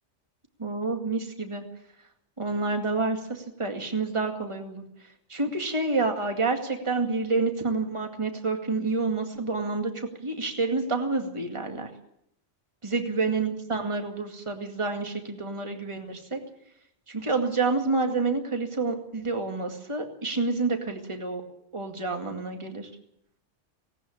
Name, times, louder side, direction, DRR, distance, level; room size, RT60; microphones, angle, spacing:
voice 1, 0.6-1.6 2.4-4.8 5.3-11.9 12.8-16.4 17.1-21.4 21.7-22.9, right 3 dB, 25° right, 4 dB, 2.2 m, -28 dB
18.0 x 18.0 x 8.6 m, 0.75 s
omnidirectional pair, 1.3 m